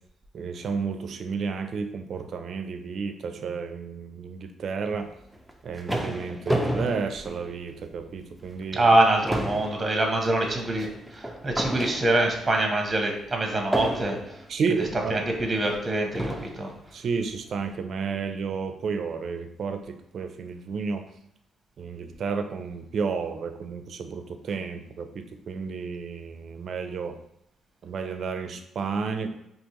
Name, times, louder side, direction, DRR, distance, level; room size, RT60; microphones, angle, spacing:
voice 1, 0.3-5.1 5.6-8.9 14.5-15.3 16.9-21.0 21.8-27.2 27.8-29.3, right 5 dB, 60° right, 8 dB, 0.5 m, -31 dB
sound 1, 5.3-8.0 8.5-8.6 8.9-12.5 13.7-14.5 15.3-15.4 16.1-16.7, right 1 dB, ahead, 0.6 m, -31 dB
voice 2, 8.7-10.9 11.1-14.2 15.1-16.7, right 1 dB, 25° right, 2 dB, 0.9 m, -24 dB
4.4 x 2.9 x 3.0 m, 0.80 s
cardioid pair, 90°, 0 cm